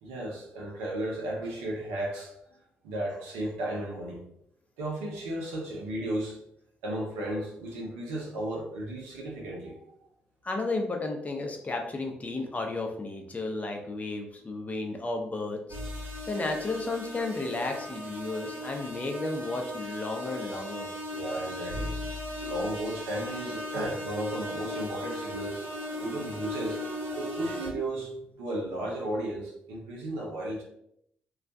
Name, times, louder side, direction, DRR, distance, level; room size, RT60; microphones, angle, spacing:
voice 1, 0.0-2.4 2.8-4.2 4.8-6.4 6.8-10.1 21.1-22.0 22.4-25.6 25.9-26.8 27.2-30.6, right 1 dB, 80° right, -2 dB, 0.6 m, -34 dB
voice 2, 10.4-15.6 16.3-20.9, left 2 dB, 30° left, 2 dB, 0.6 m, -33 dB
sound 1, 15.7-27.7, left 1 dB, 50° right, 1.0 m, -37 dB
2.3 x 2.1 x 2.5 m, 0.74 s
hypercardioid pair, 40°, 5 cm